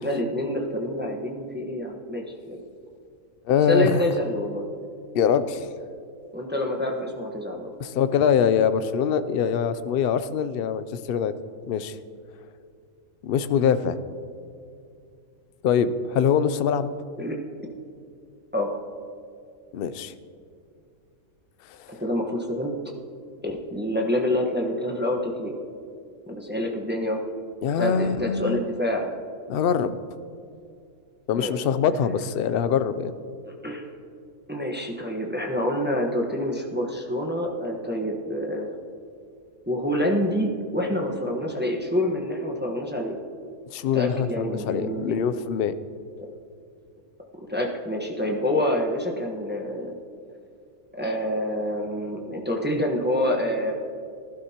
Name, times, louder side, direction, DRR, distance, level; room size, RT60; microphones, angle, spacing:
voice 1, 0.0-2.6 3.7-4.7 6.3-7.7 17.2-17.4 18.5-18.8 21.9-22.7 23.4-25.5 26.3-27.2 27.8-29.1 31.4-31.5 33.5-33.8 34.5-38.7 39.7-43.2 43.9-45.1 46.2-46.3 47.5-49.9 51.0-53.7, left 1 dB, 10° right, 0 dB, 1.1 m, -27 dB
voice 2, 3.5-4.0 5.1-5.7 7.8-11.3 11.7-12.0 13.2-14.0 15.6-16.9 19.7-20.1 21.7-21.9 27.6-28.6 29.5-30.0 31.3-33.2 43.7-45.7, left 7 dB, 70° left, 12 dB, 0.5 m, -23 dB
19.5 x 12.0 x 2.9 m, 2.4 s
omnidirectional pair, 1.5 m